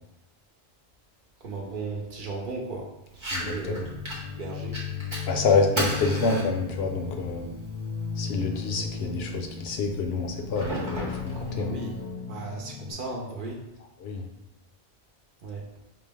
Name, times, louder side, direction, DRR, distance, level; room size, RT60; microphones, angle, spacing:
voice 1, 1.4-2.9 3.1-3.9 4.3-4.8 11.3-11.9 12.3-13.6 15.4-15.6, right 3 dB, 55° right, -1 dB, 0.9 m, -36 dB
Fire, 3.1-12.1, right 1 dB, 30° right, 1.0 m, -37 dB
voice 2, 3.3-3.9 5.3-7.5 8.2-11.7 14.0-14.3, left 4 dB, 75° left, 3 dB, 0.9 m, -27 dB
sound 1, 3.8-12.9, left 6 dB, 50° left, 0.6 m, -36 dB
5.1 x 2.0 x 3.4 m, 0.91 s
omnidirectional pair, 1.1 m